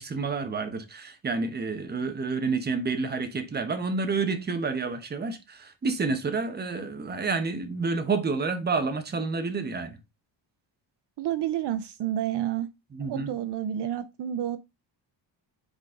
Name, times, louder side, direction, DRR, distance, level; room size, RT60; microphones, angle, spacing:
voice 1, 0.0-10.0 12.9-13.3, right 4 dB, 20° right, 0.9 m, -29 dB
voice 2, 11.2-12.7 13.0-14.6, right 11 dB, 65° right, 0.6 m, -30 dB
8.1 x 3.9 x 3.6 m
cardioid pair, 160°, 45 cm